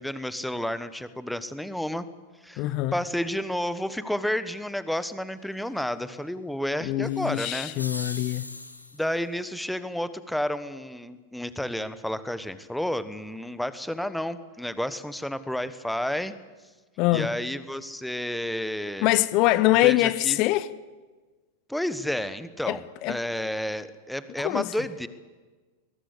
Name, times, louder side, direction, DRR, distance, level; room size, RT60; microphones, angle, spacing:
voice 1, 0.0-2.1 2.4-7.7 8.9-16.3 17.1-19.1 19.8-20.4 21.7-25.1, left 1 dB, ahead, 1.3 m, -31 dB
voice 2, 2.6-2.9 6.8-8.4 17.0-17.3 19.0-20.7 22.7-23.2 24.4-24.7, left 17 dB, 40° left, 0.8 m, -23 dB
sound 1, 7.0-9.2, left 2 dB, 85° left, 1.8 m, -40 dB
22.5 x 19.5 x 8.3 m
figure-of-eight pair, 90°, 0 cm